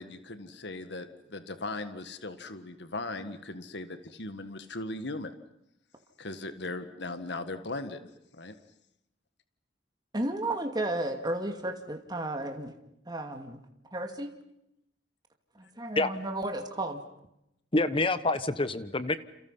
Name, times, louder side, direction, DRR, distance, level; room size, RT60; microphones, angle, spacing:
voice 1, 0.0-5.3 6.2-8.0 8.3-8.5, left 2 dB, 65° left, 10 dB, 1.7 m, -38 dB
voice 2, 10.1-12.7 13.1-13.6 13.9-14.3 15.5-17.0, right 1 dB, 25° right, 4 dB, 2.4 m, -33 dB
voice 3, 17.7-19.2, left 2 dB, 30° left, 13 dB, 1.1 m, -27 dB
29.5 x 29.0 x 5.7 m, 0.81 s
head